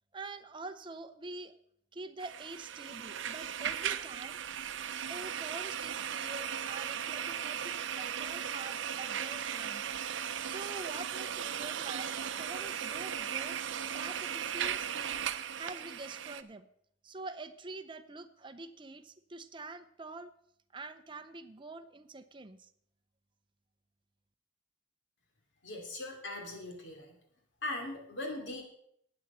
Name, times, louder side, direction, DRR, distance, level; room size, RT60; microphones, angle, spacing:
voice 1, 0.1-1.6 1.9-4.4 5.1-9.9 10.4-13.6 13.9-15.3 15.5-16.7 17.0-20.3 20.7-22.7, right 3 dB, 25° right, 10 dB, 0.6 m, -46 dB
sound 1, 2.2-16.4, right 9 dB, 70° right, 0.6 m, -37 dB
voice 2, 25.6-27.1 27.6-28.6, left 2 dB, 65° left, 2 dB, 2.6 m, -40 dB
11.5 x 8.7 x 5.4 m, 0.70 s
head